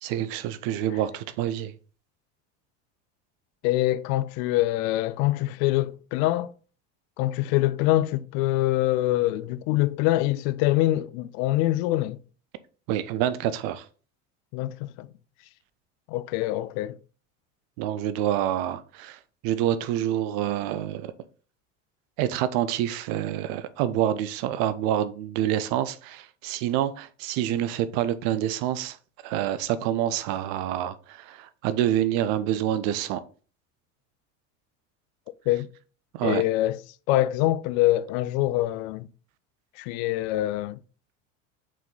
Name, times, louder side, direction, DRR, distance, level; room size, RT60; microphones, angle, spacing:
voice 1, 0.0-1.7 12.9-13.9 17.8-21.1 22.2-29.0 29.2-33.2 36.1-36.4, right 11 dB, 65° right, 0.8 m, -27 dB
voice 2, 3.6-6.5 7.2-12.2 14.5-15.1 16.1-17.0 35.5-35.7 36.2-36.8 37.1-39.1 39.8-40.8, left 16 dB, 65° left, 0.6 m, -24 dB
6.0 x 4.5 x 3.9 m
hypercardioid pair, 75°, 39 cm